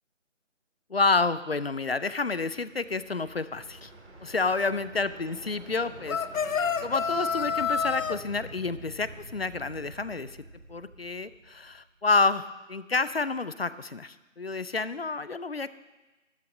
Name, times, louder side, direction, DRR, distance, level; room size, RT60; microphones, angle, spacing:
voice 1, 0.9-3.9 4.2-10.4 10.7-15.7, left 3 dB, 50° left, 15 dB, 0.5 m, -29 dB
sound 1, 2.1-12.1, right 2 dB, 60° right, 3.2 m, -48 dB
sound 2, 6.1-8.2, left 6 dB, 85° left, 0.7 m, -28 dB
13.0 x 11.0 x 3.8 m, 1.1 s
figure-of-eight pair, 170°, 39 cm